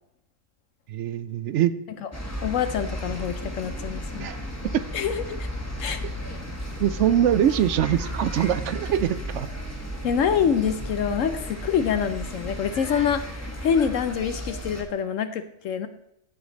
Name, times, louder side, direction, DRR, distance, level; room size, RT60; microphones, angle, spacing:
voice 1, 0.9-1.7 4.2-4.4 4.7-4.8 6.8-9.5, right 10 dB, 65° right, 14 dB, 0.8 m, -23 dB
sound 1, 2.1-14.8, equal, 10° left, 1.3 m, -34 dB
voice 2, 2.4-4.3 4.9-5.5 5.8-6.0 10.0-15.9, left 7 dB, 70° left, 10 dB, 0.9 m, -26 dB
15.0 x 5.1 x 4.0 m, 0.83 s
omnidirectional pair, 1.5 m